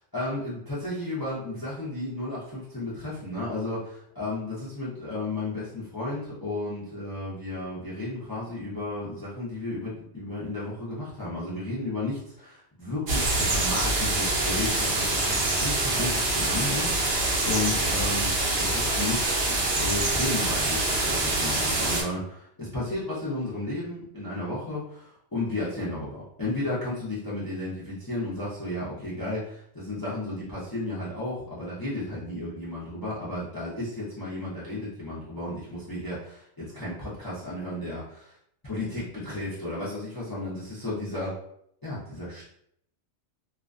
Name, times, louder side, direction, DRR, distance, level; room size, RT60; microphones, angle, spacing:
voice 1, 0.1-38.3 38.6-41.4 41.8-42.5, left 2 dB, 30° left, -9 dB, 0.4 m, -33 dB
sound 1, 13.1-22.0, right 2 dB, 60° right, 0.8 m, -25 dB
2.3 x 2.2 x 2.4 m, 0.71 s
omnidirectional pair, 1.3 m